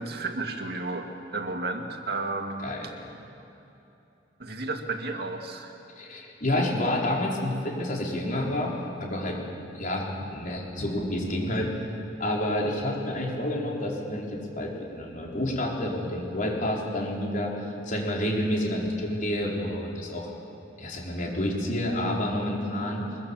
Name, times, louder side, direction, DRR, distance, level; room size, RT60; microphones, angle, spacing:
voice 1, 0.0-2.9 4.4-5.7, right 3 dB, 60° right, 4 dB, 2.1 m, -33 dB
voice 2, 5.9-8.7 9.0-9.4 9.7-11.7 12.2-20.3 20.8-23.0, left 1 dB, 50° left, -2 dB, 4.6 m, -29 dB
23.0 x 23.0 x 7.4 m, 2.9 s
head